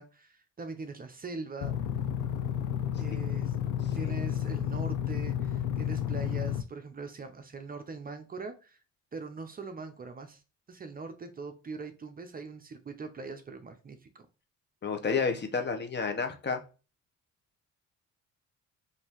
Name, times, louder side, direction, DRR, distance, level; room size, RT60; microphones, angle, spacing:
voice 1, 0.0-1.8 3.0-3.6 3.9-8.8 9.1-10.4 10.7-14.2, right 4 dB, 30° right, 7 dB, 0.6 m, -42 dB
sound 1, 1.6-6.6, left 10 dB, 85° left, 0.6 m, -31 dB
voice 2, 14.8-16.6, left 5 dB, 35° left, 5 dB, 0.8 m, -30 dB
5.3 x 2.7 x 2.9 m, 0.33 s
cardioid pair, 90°, 30 cm